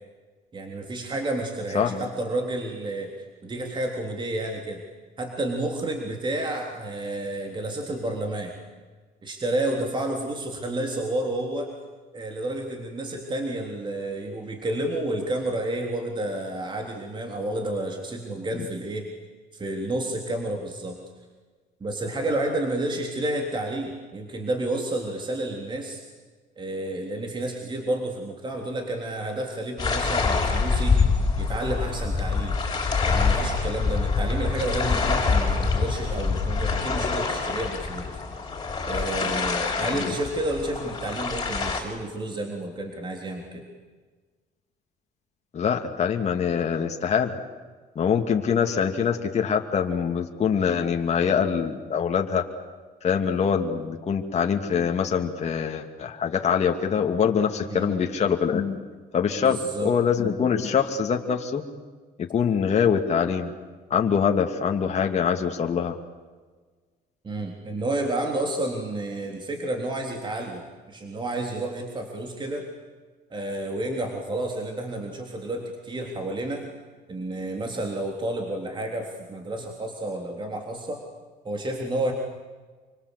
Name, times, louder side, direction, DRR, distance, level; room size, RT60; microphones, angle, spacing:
voice 1, 0.5-3.1 3.4-4.8 5.2-8.5 9.2-11.7 12.1-19.0 19.5-21.0 21.8-26.0 26.6-31.0 31.4-32.6 33.1-38.1 38.8-43.6 57.7-58.0 59.4-59.9 67.2-72.6 73.3-76.6 77.1-81.0 81.4-82.1, right 1 dB, 30° right, 2 dB, 3.7 m, -30 dB
sound 1, 29.8-41.8, left 4 dB, 25° left, 5.9 m, -25 dB
voice 2, 45.5-47.4 48.0-52.4 53.0-58.8 59.1-61.6 62.2-63.5 63.9-66.0, left 7 dB, 40° left, 3 dB, 2.4 m, -24 dB
27.0 x 24.5 x 8.3 m, 1.4 s
cardioid pair, 110°, 17 cm